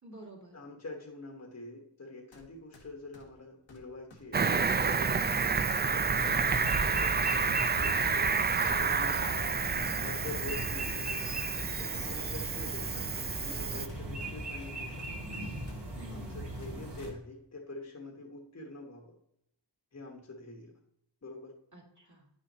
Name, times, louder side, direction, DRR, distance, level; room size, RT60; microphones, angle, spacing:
voice 1, 0.0-0.6 11.9-12.3 15.9-16.5 21.7-22.3, right 1 dB, 40° right, -3 dB, 2.6 m, -50 dB
voice 2, 0.5-5.3 5.9-7.4 7.7-9.5 9.8-11.2 11.8-15.2 16.1-19.1 19.9-20.7 21.2-21.5, left 2 dB, 35° left, 1 dB, 1.3 m, -46 dB
sound 1, 2.3-2.5 2.7-9.4 10.0-10.8 11.2-11.3 12.0-12.1 12.7-12.9 13.2-15.8 16.0-16.2 16.6-17.1, left 2 dB, 85° left, 1.5 m, -57 dB
Cricket, 4.3-13.9, right 5 dB, 25° right, 0.4 m, -30 dB
sound 2, 6.2-17.1, right 1 dB, 70° right, 2.3 m, -39 dB
9.2 x 6.1 x 2.8 m, 0.74 s
wide cardioid pair, 75°, 44 cm